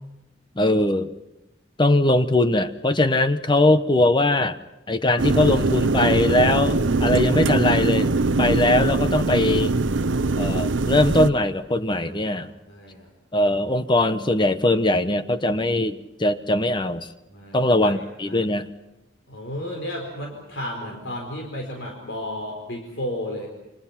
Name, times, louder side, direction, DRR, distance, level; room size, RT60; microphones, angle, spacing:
voice 1, 0.6-1.1 1.8-4.6 4.9-8.1 8.4-9.7 10.4-12.5 13.3-17.1 17.5-18.7, left 1 dB, 25° left, 11 dB, 1.0 m, -21 dB
sound 1, 5.2-11.3, right 3 dB, 80° right, 0.8 m, -22 dB
voice 2, 12.0-13.1 17.3-17.9 18.2-18.5 19.3-23.5, left 1 dB, 70° left, 1 dB, 4.5 m, -33 dB
29.5 x 25.0 x 5.9 m, 0.94 s
head